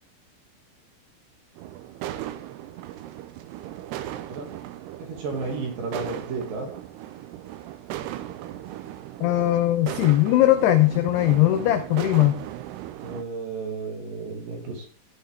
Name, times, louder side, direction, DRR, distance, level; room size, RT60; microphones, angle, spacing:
sound 1, 1.6-13.2, right 13 dB, 85° right, 2.4 m, -37 dB
voice 1, 5.0-6.7 13.0-14.8, right 4 dB, 55° right, 1 dB, 3.2 m, -32 dB
voice 2, 9.2-12.4, left 14 dB, 85° left, 9 dB, 2.3 m, -20 dB
14.5 x 6.9 x 3.4 m, 0.42 s
omnidirectional pair, 5.5 m